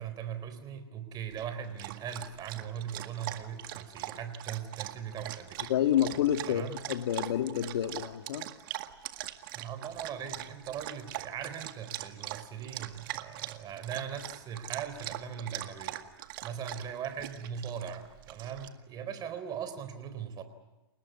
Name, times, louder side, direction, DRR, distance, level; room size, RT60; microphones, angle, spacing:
voice 1, 0.0-5.7 6.5-6.8 9.5-16.0 16.4-20.4, right 8 dB, 30° right, 10 dB, 4.1 m, -39 dB
Dog, 1.3-18.7, right 15 dB, 55° right, 1.9 m, -42 dB
voice 2, 5.7-8.5, left 10 dB, 65° left, 7 dB, 2.0 m, -29 dB
29.0 x 19.0 x 9.5 m, 1.1 s
hypercardioid pair, 120°, 14 cm